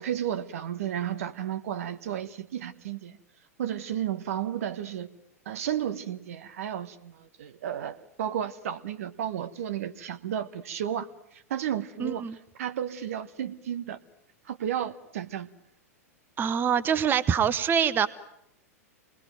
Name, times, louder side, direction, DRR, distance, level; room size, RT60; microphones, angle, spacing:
voice 1, 0.0-3.2 3.6-5.1 5.4-11.1 11.3-12.2 12.6-14.0 14.4-15.5, right 10 dB, 60° right, 10 dB, 1.2 m, -33 dB
voice 2, 12.0-12.4 16.4-18.1, right 8 dB, 25° right, 14 dB, 0.9 m, -24 dB
26.5 x 20.0 x 9.1 m, 0.80 s
figure-of-eight pair, 95°, 8 cm